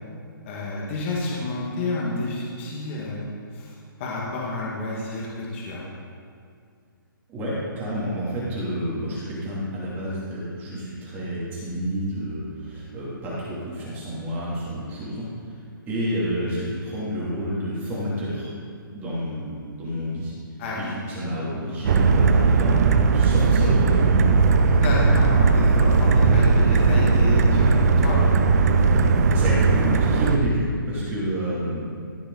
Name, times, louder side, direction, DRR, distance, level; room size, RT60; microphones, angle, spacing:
voice 1, 0.4-3.3 3.5-5.8 20.6-20.9 24.7-28.2, left 2 dB, 30° left, -4 dB, 1.9 m, -30 dB
voice 2, 7.3-15.3 15.9-18.5 18.9-20.3 20.8-24.5 28.9-29.0 29.3-32.0, equal, 15° right, -7 dB, 2.9 m, -29 dB
sound 1, 21.8-30.4, right 4 dB, 45° right, 0.7 m, -18 dB
14.0 x 6.7 x 4.0 m, 2.2 s
hypercardioid pair, 160°, 12 cm